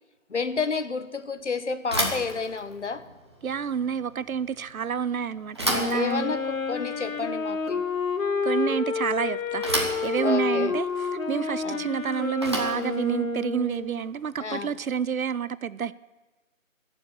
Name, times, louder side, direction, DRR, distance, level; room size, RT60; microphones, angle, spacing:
voice 1, 0.3-3.0 5.9-7.9 10.2-10.8 11.6-11.8 14.4-14.7, left 5 dB, 60° left, 12 dB, 1.1 m, -30 dB
Bicycle / Thump thud, 1.8-14.9, right 1 dB, 20° right, 1.1 m, -34 dB
voice 2, 3.4-6.4 8.4-15.9, right 7 dB, 85° right, 17 dB, 0.8 m, -29 dB
Wind instrument woodwind instrument, 5.6-14.0, left 4 dB, 75° left, 1.5 m, -29 dB
20.5 x 7.2 x 7.0 m, 1.3 s
figure-of-eight pair, 180°, 41 cm